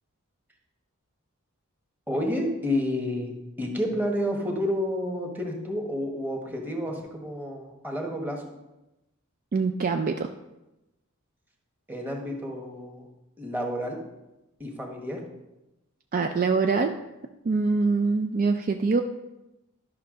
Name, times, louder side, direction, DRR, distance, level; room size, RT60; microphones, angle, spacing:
voice 1, 2.1-8.4 11.9-13.0 13.4-14.0 14.6-15.2, left 1 dB, 10° right, 0 dB, 1.3 m, -30 dB
voice 2, 9.5-10.3 16.1-17.0 17.4-19.0, right 4 dB, 40° right, 5 dB, 0.4 m, -24 dB
11.0 x 5.6 x 3.8 m, 0.97 s
head